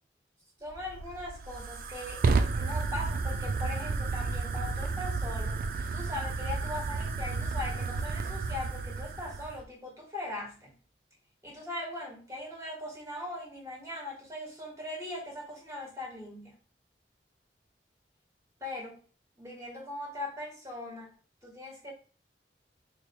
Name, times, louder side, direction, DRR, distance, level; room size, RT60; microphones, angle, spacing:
voice 1, 0.6-2.2 2.5-5.6 5.9-10.8 11.4-16.6 18.6-19.0 19.4-21.1 21.4-21.9, left 1 dB, 20° right, -1 dB, 1.4 m, -40 dB
Fire, 0.7-9.6, right 4 dB, 50° right, 0.3 m, -32 dB
4.4 x 3.4 x 2.2 m, 0.38 s
head